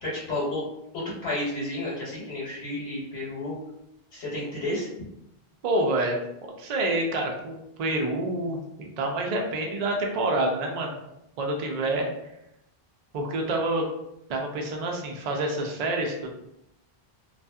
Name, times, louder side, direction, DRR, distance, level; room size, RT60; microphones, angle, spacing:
voice 1, 0.0-0.6 1.0-3.6 4.1-4.9, left 1 dB, 85° left, -7 dB, 1.1 m, -31 dB
voice 2, 5.6-6.2 6.6-11.0 11.4-12.1 13.1-13.9 14.3-16.3, right 2 dB, 55° right, 1 dB, 0.5 m, -27 dB
2.6 x 2.3 x 2.3 m, 0.81 s
omnidirectional pair, 1.1 m